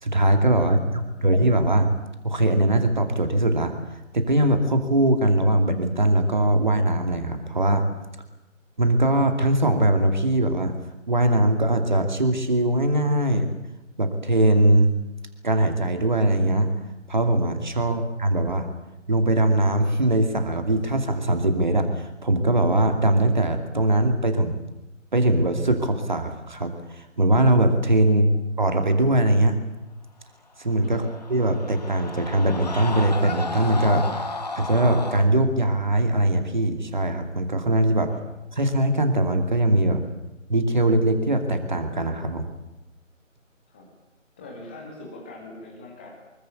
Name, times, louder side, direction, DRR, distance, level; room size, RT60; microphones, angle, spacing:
voice 1, 0.0-1.9 2.2-7.9 8.8-10.7 11.0-13.5 14.0-14.9 15.4-16.7 17.1-18.7 19.1-24.6 25.1-28.3 28.6-29.6 30.6-34.0 34.5-38.1 38.6-40.0 40.5-42.5, right 1 dB, 35° right, 6 dB, 2.5 m, -21 dB
voice 2, 0.6-1.4 17.7-18.1 28.0-28.4 30.8-31.1 38.1-38.2 43.7-43.9 44.4-46.1, left 2 dB, 10° left, 0 dB, 1.9 m, -43 dB
Screaming, 30.8-35.3, left 3 dB, 30° left, 2.1 m, -32 dB
25.0 x 21.5 x 8.4 m, 0.94 s
figure-of-eight pair, 160°, 39 cm